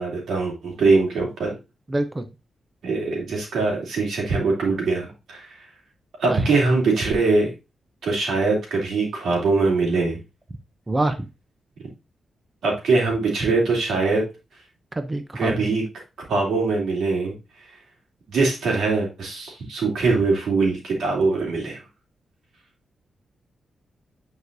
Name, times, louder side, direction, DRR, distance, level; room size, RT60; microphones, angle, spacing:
voice 1, 0.0-1.5 2.8-5.6 6.2-7.5 8.0-10.2 12.6-14.2 15.3-15.8 16.3-17.3 18.3-21.8, right 3 dB, 90° right, -1 dB, 2.8 m, -22 dB
voice 2, 1.9-2.2 6.3-6.5 10.9-11.2 14.9-15.7, right 2 dB, 20° right, 9 dB, 0.6 m, -26 dB
9.3 x 4.7 x 2.6 m, 0.27 s
cardioid pair, 100°, 0 cm